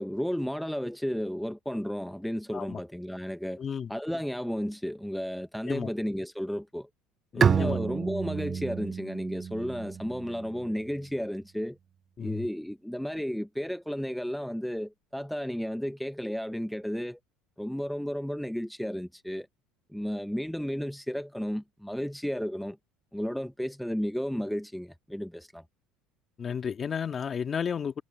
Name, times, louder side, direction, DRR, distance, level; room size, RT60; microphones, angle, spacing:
voice 1, 0.0-3.6 3.9-6.9 7.3-11.8 12.2-17.2 17.6-19.5 19.9-22.8 23.1-25.6, equal, ahead, 0.9 m, -33 dB
voice 2, 3.6-3.9 5.7-5.9 7.3-7.8 12.2-12.5 26.4-28.0, left 7 dB, 35° left, 2.4 m, -32 dB
Bowed string instrument, 7.4-10.9, right 7 dB, 35° right, 0.6 m, -29 dB
supercardioid pair, 85°, 0 cm